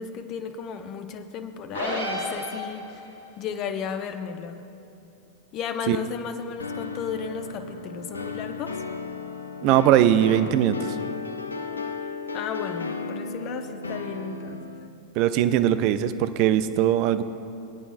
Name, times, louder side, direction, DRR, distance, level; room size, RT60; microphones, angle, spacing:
voice 1, 0.0-3.0 3.4-4.6 5.5-8.8 12.3-14.6, left 6 dB, 35° left, 8 dB, 0.7 m, -34 dB
sound 1, 1.7-3.1, equal, 85° right, 2.5 m, -30 dB
sound 2, 6.6-14.9, left 4 dB, 75° left, 0.5 m, -34 dB
voice 2, 9.6-11.0 15.2-17.2, right 11 dB, 45° right, 12 dB, 0.4 m, -20 dB
22.0 x 9.0 x 2.5 m, 2.8 s
figure-of-eight pair, 90°, 0 cm